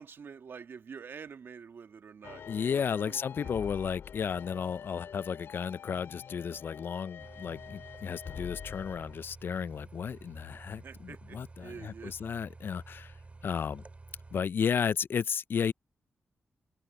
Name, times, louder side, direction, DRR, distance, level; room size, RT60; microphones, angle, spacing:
voice 1, 0.0-3.5 10.8-12.1, right 6 dB, 65° right, 1.5 m, -47 dB
sound 1, 2.2-9.2, left 8 dB, 80° left, 2.4 m, -46 dB
voice 2, 2.5-13.1 13.4-13.8 14.3-15.7, left 7 dB, 65° left, 0.4 m, -33 dB
sound 2, 7.2-14.4, right 3 dB, 35° right, 2.2 m, -51 dB
cardioid pair, 65°, 4 cm